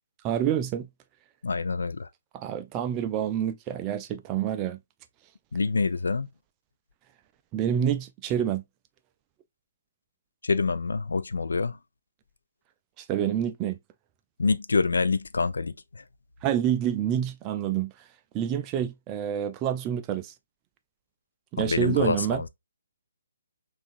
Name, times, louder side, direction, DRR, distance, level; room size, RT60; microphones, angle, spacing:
voice 1, 0.2-0.9 2.3-4.8 7.5-8.6 13.0-13.8 16.4-17.9 18.3-20.3 21.5-22.4, right 10 dB, 20° right, 0.3 m, -27 dB
voice 2, 1.4-2.1 5.5-6.3 10.4-11.8 14.4-15.7 21.6-22.5, left 4 dB, 65° left, 0.5 m, -26 dB
5.9 x 2.5 x 2.5 m
figure-of-eight pair, 135°, 0 cm